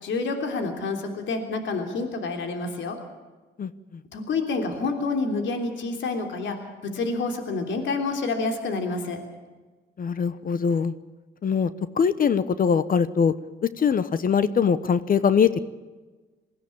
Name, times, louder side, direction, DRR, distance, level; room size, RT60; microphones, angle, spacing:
voice 1, 0.0-3.0 4.1-6.6 6.9-9.2, left 3 dB, 70° left, 5 dB, 3.3 m, -28 dB
voice 2, 10.0-10.9 11.4-11.7 12.0-13.3 13.8-15.6, left 6 dB, 45° left, 15 dB, 1.0 m, -22 dB
21.5 x 15.5 x 8.7 m, 1.3 s
cardioid pair, 90°, 20 cm